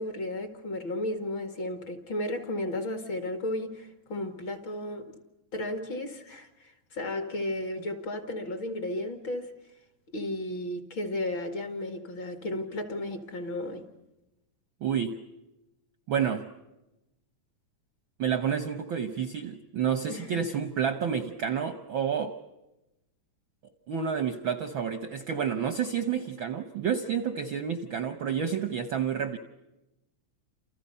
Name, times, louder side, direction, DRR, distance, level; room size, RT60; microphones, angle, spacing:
voice 1, 0.0-5.2 5.5-9.5 10.1-13.9 20.1-20.4, left 1 dB, 45° left, 2.5 m, -34 dB
voice 2, 14.8-15.2 16.1-16.5 18.2-22.4 23.9-29.4, right 7 dB, 60° right, 1.3 m, -29 dB
29.5 x 28.5 x 5.6 m
omnidirectional pair, 3.4 m